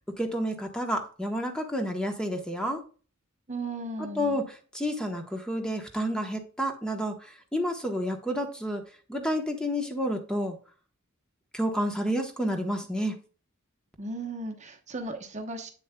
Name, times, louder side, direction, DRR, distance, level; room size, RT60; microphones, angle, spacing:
voice 1, 0.2-2.8 4.0-8.8 9.1-10.6 11.5-13.2, equal, 5° left, 4 dB, 1.0 m, -30 dB
voice 2, 3.5-4.4 14.0-15.7, right 2 dB, 35° right, 4 dB, 0.9 m, -36 dB
8.4 x 7.1 x 2.2 m, 0.38 s
head